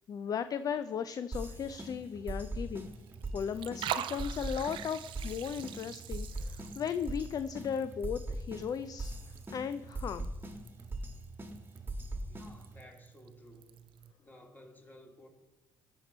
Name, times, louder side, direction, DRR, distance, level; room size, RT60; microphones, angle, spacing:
voice 1, 0.1-2.9 3.3-9.1 9.5-10.3, left 7 dB, 45° left, 11 dB, 0.4 m, -36 dB
sound 1, 1.3-12.8, right 1 dB, 25° right, 1.3 m, -41 dB
Liquid, 2.7-14.1, right 10 dB, 65° right, 0.5 m, -45 dB
voice 2, 12.3-13.8 14.2-15.3, left 1 dB, 20° left, 1 dB, 2.1 m, -55 dB
13.0 x 4.5 x 4.3 m, 1.1 s
supercardioid pair, 70°, 9 cm